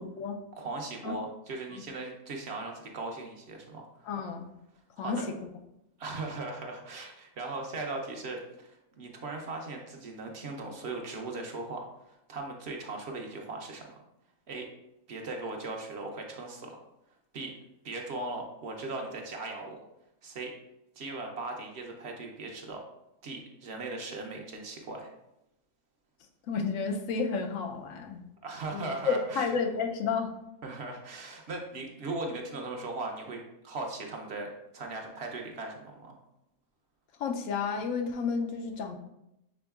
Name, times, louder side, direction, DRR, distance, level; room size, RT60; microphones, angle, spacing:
voice 1, 0.6-4.1 5.0-5.2 6.0-14.0 14.5-14.7 15.1-16.8 17.3-17.5 17.8-19.8 20.2-20.5 21.0-22.8 23.2-25.1 28.4-29.5 30.6-33.4 33.6-36.2, right 2 dB, 60° right, 2 dB, 0.9 m, -38 dB
voice 2, 4.0-4.5 5.0-5.5 26.5-28.2 28.7-30.3 37.2-39.0, left 5 dB, 80° left, 4 dB, 1.0 m, -31 dB
6.1 x 3.6 x 2.3 m, 0.86 s
omnidirectional pair, 1.4 m